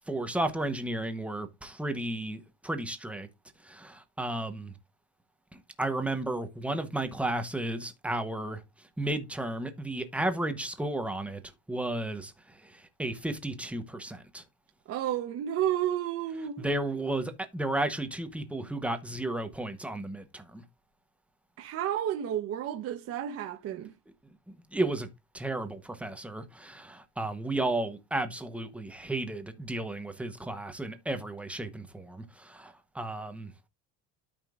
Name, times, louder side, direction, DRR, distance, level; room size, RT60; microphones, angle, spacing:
voice 1, 0.1-3.3 3.6-4.7 5.5-8.6 9.0-11.4 11.7-14.4 16.6-20.6 24.5-25.1 25.3-33.5, right 1 dB, 5° right, 0.9 m, -33 dB
voice 2, 14.9-16.7 21.6-23.9, right 11 dB, 40° right, 1.0 m, -31 dB
13.0 x 5.2 x 2.5 m
cardioid pair, 165°, 37 cm